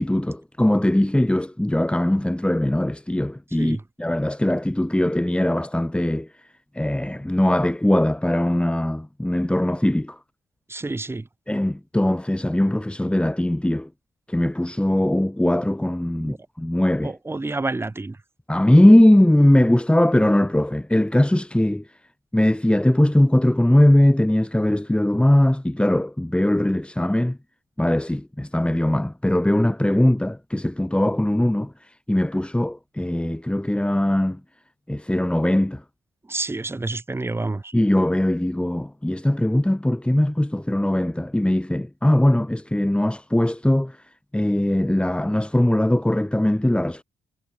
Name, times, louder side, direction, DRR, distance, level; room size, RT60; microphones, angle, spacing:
voice 1, 0.0-6.3 6.8-10.1 11.5-13.9 14.3-17.1 18.5-21.8 22.3-27.4 27.8-31.7 32.1-34.4 34.9-35.8 37.7-43.9 44.3-47.0, left 1 dB, 10° left, 6.4 m, -20 dB
voice 2, 10.7-11.2 16.2-16.4 17.0-18.2 36.3-37.7, right 2 dB, 20° right, 1.9 m, -28 dB
figure-of-eight pair, 40°, 13 cm